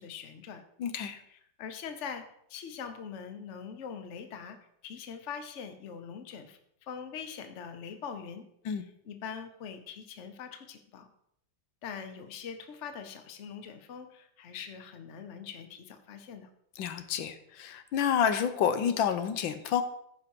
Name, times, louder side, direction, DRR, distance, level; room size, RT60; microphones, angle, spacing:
voice 1, 0.0-0.6 1.3-2.2 2.5-4.6 4.8-8.4 9.0-11.1 11.8-16.5, left 7 dB, 50° left, 8 dB, 1.0 m, -42 dB
voice 2, 0.8-1.2 8.6-8.8 16.8-19.8, left 8 dB, 90° left, 10 dB, 1.6 m, -29 dB
15.0 x 5.1 x 4.6 m, 0.72 s
omnidirectional pair, 2.0 m